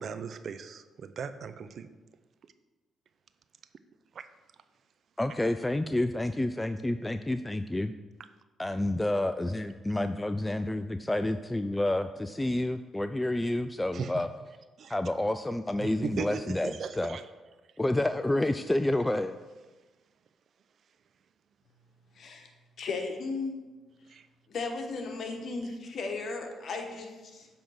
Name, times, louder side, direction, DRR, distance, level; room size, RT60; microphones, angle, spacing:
voice 1, 0.0-1.9 4.1-4.3 13.9-14.2 14.8-14.9 15.8-17.2 24.1-24.3, right 6 dB, 60° right, 11 dB, 0.4 m, -38 dB
voice 2, 5.2-7.9 8.6-14.3 14.9-17.2 17.8-19.4, left 1 dB, 15° left, 9 dB, 0.3 m, -29 dB
voice 3, 22.1-22.5 22.8-23.5 24.5-27.5, left 3 dB, 60° left, 4 dB, 1.1 m, -35 dB
7.6 x 3.6 x 5.5 m, 1.2 s
supercardioid pair, 55°, 0 cm